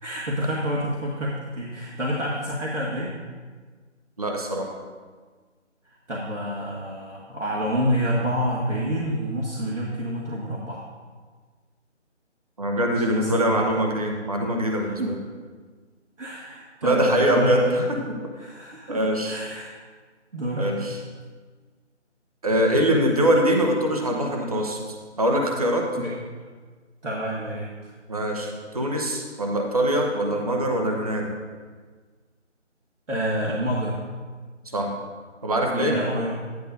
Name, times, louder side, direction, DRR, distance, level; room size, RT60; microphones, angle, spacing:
voice 1, 0.0-3.1 6.1-10.9 13.0-13.7 14.8-15.1 16.2-17.9 18.4-19.8 20.3-20.7 26.0-26.1 27.0-27.9 33.1-34.0 35.7-36.3, equal, 80° right, -5 dB, 1.8 m, -28 dB
voice 2, 4.2-4.7 12.6-15.2 16.8-18.0 18.9-19.4 20.6-21.0 22.4-24.8 25.2-25.9 28.1-31.3 34.6-34.9 35.4-35.9, right 1 dB, 30° right, 1 dB, 0.9 m, -23 dB
11.0 x 10.5 x 2.6 m, 1.5 s
figure-of-eight pair, 165°, 36 cm